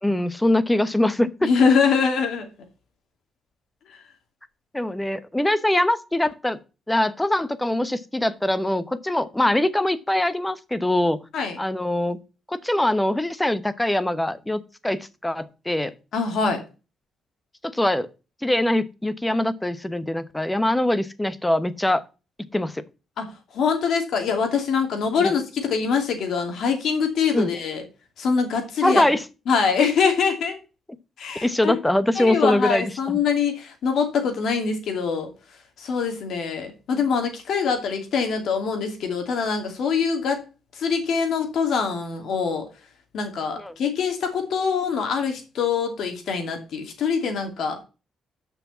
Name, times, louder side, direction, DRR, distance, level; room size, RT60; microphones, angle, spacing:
voice 1, 0.0-1.5 4.7-6.6 6.9-11.2 11.6-12.2 12.5-15.9 17.6-18.1 18.4-22.0 22.4-22.8 25.2-25.3 27.3-27.5 28.8-29.2 31.4-33.2 43.6-43.7, left 1 dB, 10° left, 14 dB, 1.0 m, -23 dB
voice 2, 1.4-2.5 3.9-4.0 11.3-11.6 16.1-16.6 23.2-23.3 23.5-27.8 28.2-29.0 29.5-30.6 31.2-31.7 32.1-35.3 35.8-40.4 40.7-42.7 43.1-47.8, left 5 dB, 70° left, 4 dB, 2.7 m, -24 dB
6.8 x 5.9 x 7.3 m, 0.31 s
cardioid pair, 80°, 0 cm